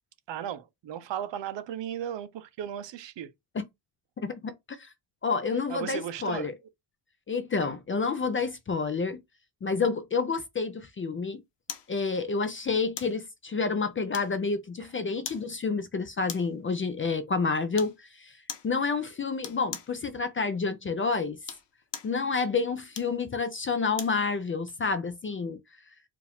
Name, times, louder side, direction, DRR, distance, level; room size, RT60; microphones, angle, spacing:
voice 1, 0.3-3.3 5.7-6.5, right 10 dB, 65° right, 0.7 m, -36 dB
voice 2, 4.2-4.9 5.2-6.5 7.3-9.2 9.6-11.4 11.9-18.4 18.6-21.4 22.0-25.6, left 4 dB, 30° left, 0.4 m, -29 dB
sound 1, 11.7-11.9 13.0-13.2 14.1-14.6 15.2-15.5 16.3-16.6 17.7-18.0 18.5-18.7 19.4-20.0 21.3-22.2 22.9-24.2 24.7-24.8, left 8 dB, 65° left, 0.9 m, -40 dB
4.7 x 2.5 x 3.4 m
wide cardioid pair, 165°, 47 cm